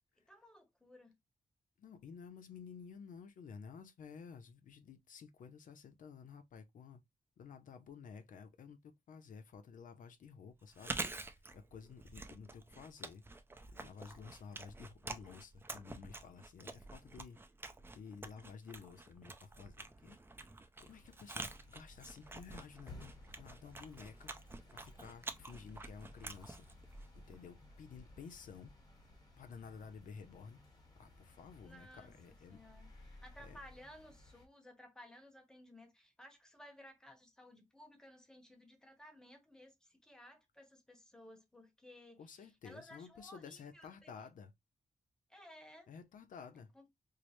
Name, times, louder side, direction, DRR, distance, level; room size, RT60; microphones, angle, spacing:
voice 1, 0.3-1.2 31.6-44.1 45.3-45.9 46.7-46.8, equal, 5° left, 1.0 m, -58 dB
voice 2, 1.8-7.0 7.4-11.0 11.3-13.2 13.7-17.4 17.9-20.2 20.8-24.3 24.7-26.7 27.1-28.7 29.4-30.6 31.0-32.6 33.4-33.6 42.2-44.5 45.9-46.7, left 6 dB, 80° left, 0.6 m, -53 dB
Chewing mastication, 10.6-27.5, right 2 dB, 15° right, 0.5 m, -48 dB
sound 1, 20.8-34.5, left 1 dB, 30° left, 1.3 m, -58 dB
4.6 x 2.0 x 3.0 m
wide cardioid pair, 120°, 13 cm